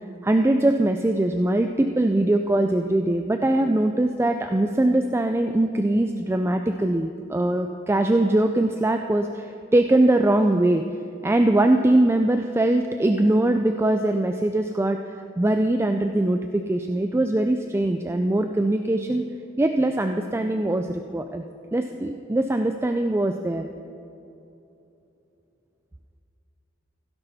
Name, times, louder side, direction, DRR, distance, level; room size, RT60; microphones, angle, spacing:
voice 1, 0.2-10.8 11.2-19.2 19.6-21.4 21.7-23.7, right 1 dB, 15° right, 6 dB, 0.3 m, -22 dB
16.0 x 11.0 x 4.1 m, 2.8 s
head